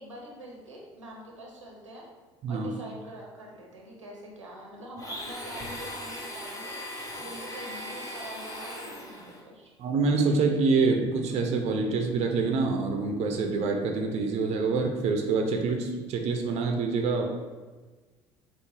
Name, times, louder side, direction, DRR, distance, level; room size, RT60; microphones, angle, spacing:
voice 1, 0.0-2.1 2.5-6.7 7.1-9.7, right 1 dB, 85° right, -2 dB, 0.7 m, -44 dB
Domestic sounds home sounds, 5.0-9.4, left 1 dB, 20° left, 1.0 m, -39 dB
voice 2, 9.8-17.3, right 4 dB, 45° right, 3 dB, 0.5 m, -26 dB
5.6 x 2.1 x 3.1 m, 1.3 s
figure-of-eight pair, 60°, 15 cm